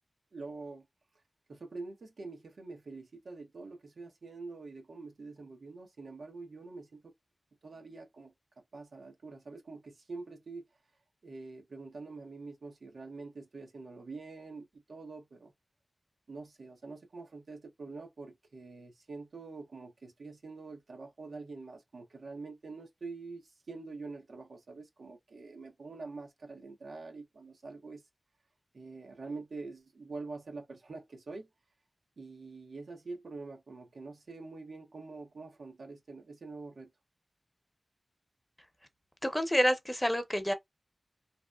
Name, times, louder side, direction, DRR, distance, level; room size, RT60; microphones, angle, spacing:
voice 1, 0.3-0.9 1.5-7.1 7.6-10.6 11.2-15.5 16.3-28.0 28.7-31.5 32.2-36.9, right 3 dB, 85° right, 0.7 m, -45 dB
voice 2, 39.2-40.5, equal, 15° left, 0.7 m, -28 dB
2.8 x 2.0 x 2.3 m
cardioid pair, 40°, 0 cm